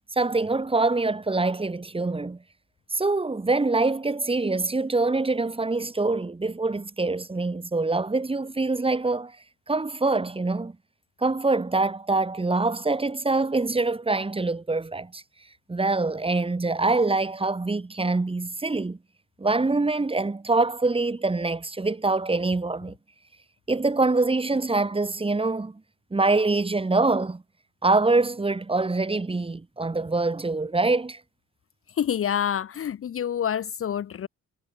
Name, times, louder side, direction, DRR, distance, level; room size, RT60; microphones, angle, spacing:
voice 1, 0.1-2.4 2.9-9.4 9.7-10.7 11.2-15.2 15.7-19.0 19.4-23.0 23.7-25.8 26.1-27.4 27.8-31.2, right 3 dB, 20° right, 2.3 m, -24 dB
voice 2, 32.0-34.3, left 9 dB, 45° left, 0.9 m, -27 dB
cardioid pair, 90°, 30 cm